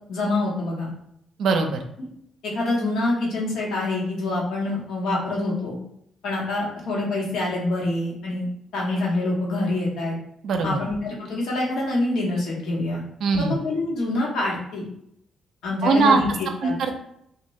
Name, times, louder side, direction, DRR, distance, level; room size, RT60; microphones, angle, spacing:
voice 1, 0.1-0.9 2.4-5.8 6.2-8.5 8.7-10.2 10.6-13.0 13.4-14.8 15.6-16.8, left 2 dB, 85° left, -4 dB, 1.1 m, -26 dB
voice 2, 1.4-1.8 10.4-10.8 13.2-13.6 15.8-16.2 16.6-16.9, right 4 dB, 70° right, 5 dB, 0.4 m, -20 dB
2.7 x 2.3 x 3.1 m, 0.74 s
cardioid pair, 90°, 0 cm